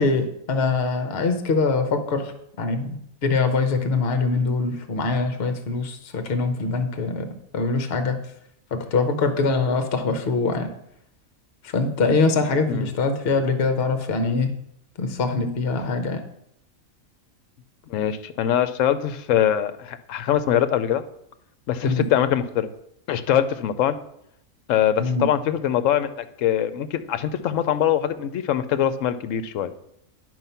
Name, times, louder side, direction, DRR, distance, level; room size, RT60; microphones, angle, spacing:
voice 1, 0.0-8.2 8.7-10.7 11.6-14.5 15.0-16.2 21.8-22.1 25.0-25.3, left 4 dB, 50° left, 7 dB, 1.1 m, -23 dB
voice 2, 17.9-21.0 21.7-22.7 23.1-24.0 24.7-29.7, left 10 dB, 70° left, 12 dB, 1.0 m, -23 dB
9.7 x 4.7 x 5.6 m, 0.74 s
omnidirectional pair, 1.4 m